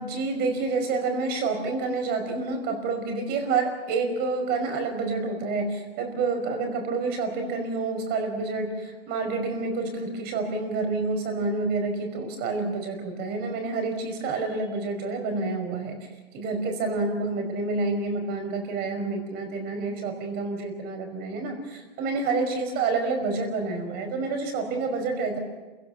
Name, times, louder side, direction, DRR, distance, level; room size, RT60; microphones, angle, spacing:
voice 1, 0.0-16.0 16.3-25.4, right 3 dB, 35° right, 5 dB, 5.4 m, -28 dB
28.0 x 16.5 x 7.2 m, 1.2 s
hypercardioid pair, 140°, 30 cm